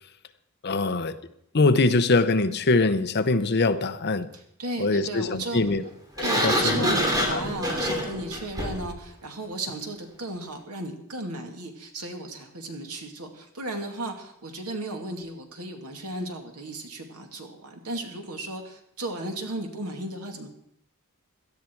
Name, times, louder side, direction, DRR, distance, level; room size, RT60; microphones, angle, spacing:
voice 1, 0.6-1.1 1.5-4.3 4.8-5.8 6.4-6.9 7.3-7.4, left 3 dB, 50° left, 0.8 m, -23 dB
voice 2, 4.3-5.6 6.2-20.5, right 1 dB, 85° right, 2.4 m, -35 dB
Sliding door, 6.2-8.9, equal, 15° right, 2.8 m, -26 dB
17.5 x 13.0 x 4.6 m
head